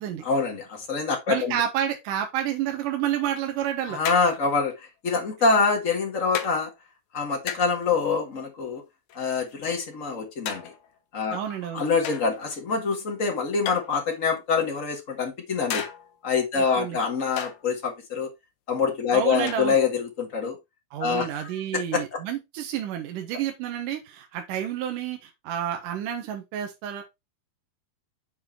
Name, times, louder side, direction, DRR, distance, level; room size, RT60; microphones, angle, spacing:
voice 1, 0.2-1.6 3.9-6.7 7.1-8.8 9.1-10.7 11.1-11.4 11.7-15.8 16.2-18.3 18.7-20.6 21.0-22.2, left 5 dB, 40° left, 1.1 m, -25 dB
voice 2, 1.3-4.0 11.3-11.9 16.6-17.0 19.1-19.8 20.9-27.0, right 10 dB, 70° right, 2.5 m, -29 dB
sound 1, 3.2-3.3 4.1-4.7 5.6-5.8 6.4-6.6 7.5-7.9 9.1-9.7 10.5-11.0 12.0-12.6 13.7-14.4 15.7-16.2 17.4-17.7 19.5-19.9, left 8 dB, 65° left, 2.2 m, -34 dB
7.0 x 4.8 x 4.2 m
omnidirectional pair, 4.2 m